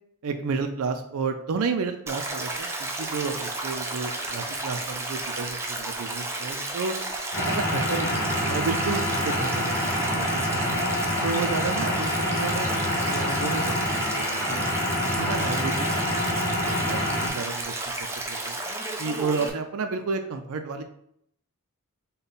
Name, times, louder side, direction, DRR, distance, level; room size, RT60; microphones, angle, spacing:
voice 1, 0.2-2.7 3.0-6.9 7.4-10.8 11.2-14.6 15.0-17.8 18.3-18.6 19.0-20.8, right 4 dB, 70° right, 6 dB, 0.4 m, -31 dB
Stream, 2.1-19.5, right 2 dB, 10° right, 0.5 m, -32 dB
sound 1, 7.3-17.3, left 1 dB, 50° left, 1.7 m, -27 dB
5.3 x 2.2 x 4.0 m, 0.71 s
head